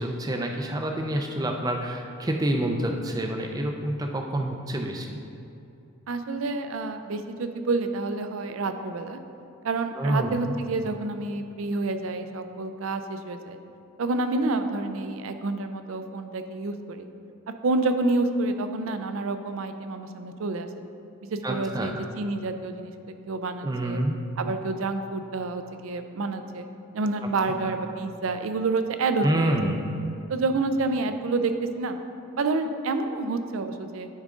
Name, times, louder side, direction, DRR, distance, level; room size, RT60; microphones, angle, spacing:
voice 1, 0.0-5.2 10.0-10.4 21.4-22.0 23.6-24.2 27.2-27.7 29.2-29.9, right 1 dB, 15° right, 3 dB, 0.4 m, -28 dB
voice 2, 6.1-9.2 9.6-13.6 14.0-17.1 17.6-20.7 21.3-22.9 23.3-24.0 24.4-26.7 26.9-29.6 30.3-32.0 32.4-34.1, right 3 dB, 75° right, 8 dB, 0.4 m, -28 dB
10.0 x 3.7 x 3.7 m, 2.7 s
head